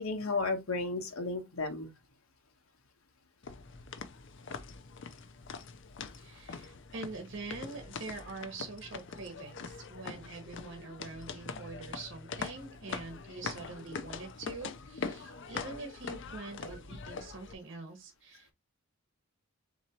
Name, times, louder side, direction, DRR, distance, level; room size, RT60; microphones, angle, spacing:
voice 1, 0.0-1.9 15.2-15.4, left 3 dB, 80° left, 1.1 m, -33 dB
sound 1, 3.4-17.5, left 4 dB, 60° left, 0.6 m, -43 dB
voice 2, 6.2-18.5, right 3 dB, 55° right, 1.0 m, -44 dB
3.9 x 3.0 x 4.2 m
head